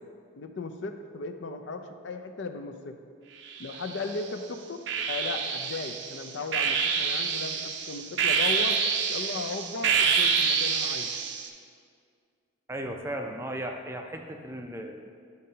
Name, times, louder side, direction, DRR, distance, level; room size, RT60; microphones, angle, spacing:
voice 1, 0.3-3.0 3.6-8.8 9.1-11.1, left 3 dB, 65° left, 7 dB, 0.5 m, -36 dB
sound 1, 3.5-4.2 4.9-11.5, right 6 dB, 60° right, 0.5 m, -27 dB
voice 2, 12.7-15.1, right 1 dB, 15° right, 3 dB, 0.4 m, -36 dB
10.5 x 6.4 x 2.8 m, 2.2 s
head